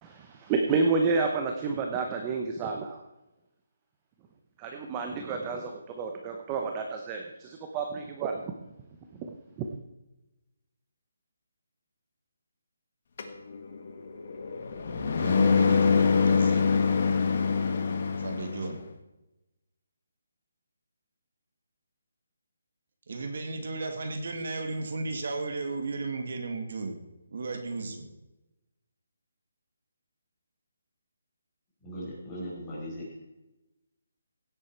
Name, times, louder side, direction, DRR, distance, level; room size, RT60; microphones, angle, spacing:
voice 1, 0.0-3.0 4.6-8.4, right 4 dB, 15° right, 3 dB, 0.8 m, -30 dB
sound 1, 13.2-18.8, left 5 dB, 45° left, 1.4 m, -25 dB
voice 2, 15.2-16.8 18.1-18.8 23.1-27.0 27.3-28.1, right 3 dB, 50° right, 5 dB, 1.9 m, -35 dB
voice 3, 31.8-33.2, equal, 10° left, -7 dB, 4.9 m, -38 dB
16.5 x 8.2 x 4.5 m, 0.98 s
hypercardioid pair, 170°, 0 cm